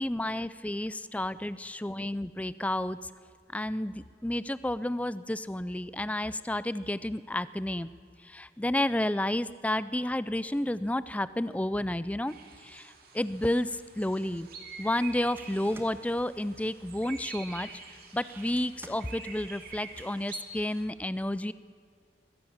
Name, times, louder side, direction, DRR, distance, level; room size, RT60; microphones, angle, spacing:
voice 1, 0.0-3.0 3.5-7.9 8.2-12.3 12.6-14.5 14.8-17.7 18.1-21.5, left 1 dB, 10° left, 16 dB, 0.4 m, -31 dB
sound 1, 12.3-20.8, right 5 dB, 55° right, 2.7 m, -47 dB
sound 2, 13.3-20.1, right 1 dB, 15° right, 1.5 m, -55 dB
22.5 x 16.0 x 7.2 m, 2.3 s
head